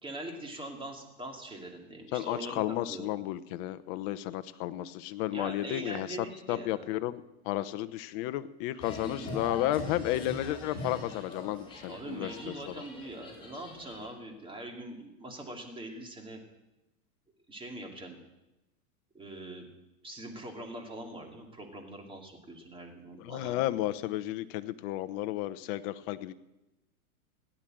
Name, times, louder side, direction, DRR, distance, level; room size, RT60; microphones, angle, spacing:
voice 1, 0.0-3.1 5.3-6.8 11.9-16.4 17.5-18.2 19.1-19.7 20.0-23.8, right 1 dB, 10° right, 2 dB, 2.6 m, -43 dB
voice 2, 2.1-6.1 6.5-12.8 23.2-26.3, left 14 dB, 40° left, 12 dB, 0.8 m, -33 dB
sound 1, 8.8-14.1, left 1 dB, 10° left, 4.4 m, -42 dB
16.5 x 10.5 x 7.7 m, 0.98 s
hypercardioid pair, 135°, 44 cm